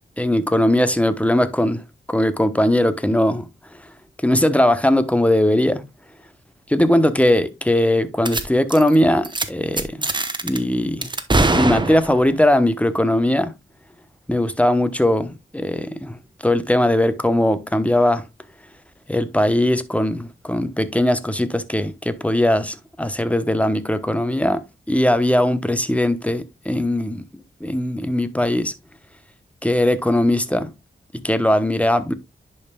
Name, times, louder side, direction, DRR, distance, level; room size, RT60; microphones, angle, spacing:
voice 1, 0.2-1.8 2.1-3.4 4.2-5.8 6.7-10.1 10.4-11.1 11.5-13.5 14.3-16.2 16.4-18.3 19.1-24.6 24.9-27.3 27.6-28.7 29.6-30.7 31.2-32.1, left 1 dB, 5° left, 0.9 m, -19 dB
sound 1, 8.2-8.4 8.7-8.9 9.2-9.4 9.8-10.6 11.0-12.3, right 2 dB, 25° right, 0.9 m, -21 dB
10.5 x 5.5 x 2.3 m
cardioid pair, 70°, 20 cm